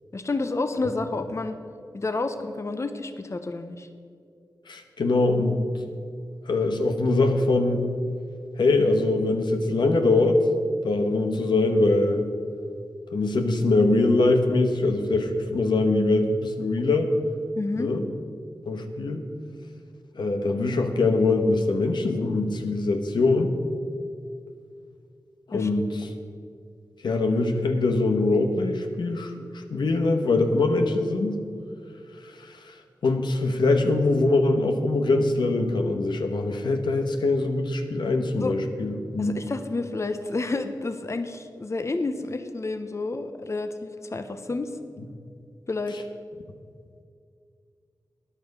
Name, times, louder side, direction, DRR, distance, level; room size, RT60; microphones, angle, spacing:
voice 1, 0.1-1.6 1.9-3.9 17.6-17.9 25.5-25.7 38.4-38.5 39.2-44.8 45.7-46.0, left 3 dB, 40° left, 8 dB, 0.8 m, -30 dB
voice 2, 4.7-5.6 6.5-7.8 8.6-10.4 10.8-12.3 13.1-17.1 17.8-18.0 18.7-19.2 20.2-23.5 25.5-26.1 27.0-31.4 32.2-32.7 33.0-39.4, left 2 dB, 90° left, 5 dB, 1.2 m, -23 dB
13.5 x 10.0 x 5.3 m, 2.3 s
wide cardioid pair, 65°, 8 cm